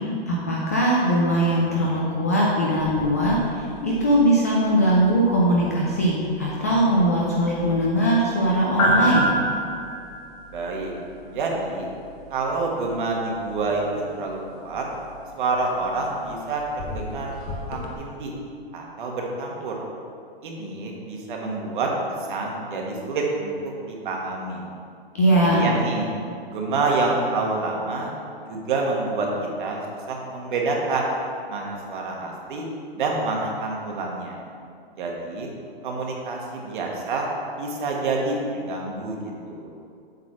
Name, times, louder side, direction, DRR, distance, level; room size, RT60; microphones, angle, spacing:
voice 1, 0.0-9.3 25.1-25.6, right 1 dB, 15° left, -5 dB, 0.3 m, -21 dB
sound 1, 2.8-17.9, equal, 35° left, 0.9 m, -32 dB
voice 2, 10.5-10.9 11.2-11.9 12.3-14.8 15.4-18.3 18.7-19.8 20.4-21.9 22.3-23.6 23.9-24.7 25.3-26.1 26.5-28.1 28.5-29.3 29.6-29.8 30.1-31.1 31.5-32.7 32.9-34.4 35.0-35.5 35.8-37.3 37.6-39.7, right 3 dB, 55° right, -1 dB, 1.5 m, -27 dB
8.1 x 4.0 x 6.0 m, 2.4 s
hypercardioid pair, 165°, 31 cm